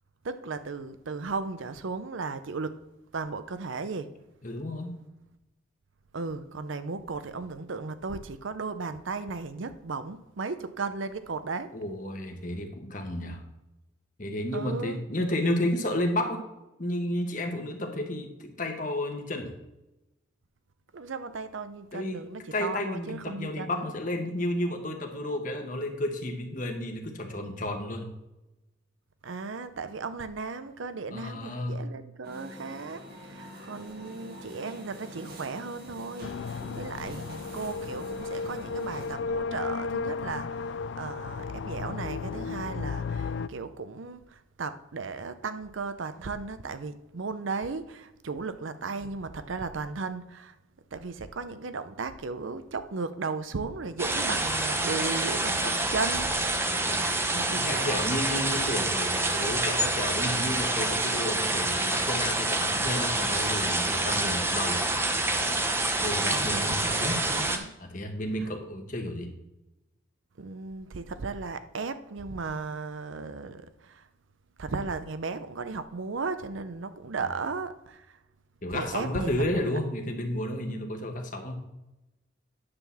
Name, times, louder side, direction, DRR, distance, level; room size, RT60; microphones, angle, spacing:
voice 1, 0.2-2.8 3.1-4.1 6.1-11.7 14.5-15.0 20.9-23.9 29.2-50.6 50.9-56.8 57.3-58.0 66.2-67.7 68.4-68.5 70.4-74.1 74.6-78.2 78.7-79.8, right 4 dB, 75° right, 0.6 m, -36 dB
voice 2, 4.4-4.9 11.7-13.4 14.2-16.5 16.8-19.5 21.9-22.2 22.5-28.1 31.1-31.8 56.9-57.3 57.5-64.8 66.0-67.2 67.8-69.3 78.6-81.6, left 1 dB, 40° left, 1.2 m, -32 dB
sound 1, 32.2-39.2, equal, 50° right, 1.6 m, -45 dB
sound 2, 36.2-43.5, left 5 dB, 60° left, 0.3 m, -34 dB
sound 3, 54.0-67.6, right 2 dB, 10° right, 0.7 m, -27 dB
9.8 x 3.9 x 7.0 m
head